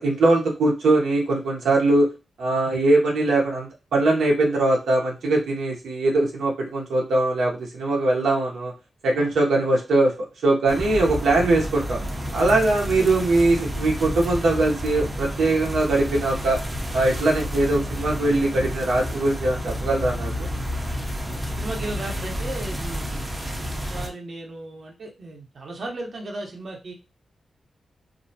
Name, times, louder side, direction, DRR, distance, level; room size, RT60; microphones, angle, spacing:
voice 1, 0.0-2.1 2.4-8.7 9.0-10.1 10.4-12.0 12.3-16.6 16.9-20.5, right 2 dB, 90° right, -1 dB, 0.6 m, -21 dB
sound 1, 10.7-24.1, equal, 15° right, 0.5 m, -30 dB
voice 2, 21.6-23.3 23.7-26.9, right 2 dB, 50° right, 1 dB, 0.7 m, -35 dB
2.5 x 2.0 x 2.6 m, 0.28 s
cardioid pair, 95°, 0 cm